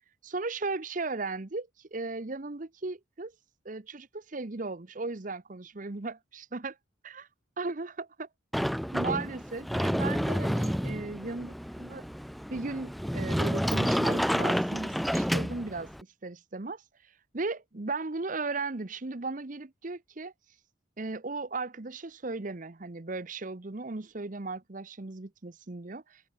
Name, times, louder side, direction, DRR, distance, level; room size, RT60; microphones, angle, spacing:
voice 1, 0.2-3.3 3.6-6.8 7.0-7.3 7.6-8.3 8.9-12.1 12.5-15.9 16.2-16.8 17.3-20.3 21.0-26.3, right 3 dB, 45° right, 0.9 m, -36 dB
Sliding door, 8.5-16.0, equal, ahead, 0.9 m, -29 dB
head